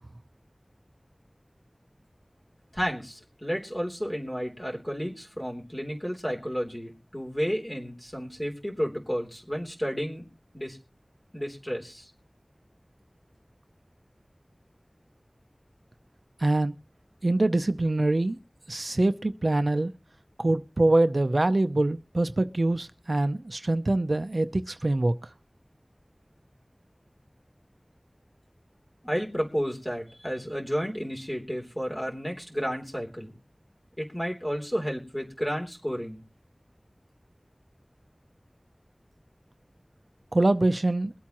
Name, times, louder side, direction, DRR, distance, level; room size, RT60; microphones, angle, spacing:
voice 1, 2.7-10.3 10.5-10.8 11.3-12.1 29.0-33.4 34.0-36.2, equal, 20° left, 3.3 m, -32 dB
voice 2, 16.4-16.7 17.2-18.4 18.7-19.9 20.4-25.1 40.3-41.1, right 2 dB, 70° right, 0.6 m, -24 dB
22.5 x 8.5 x 3.0 m
wide cardioid pair, 45°, 0 cm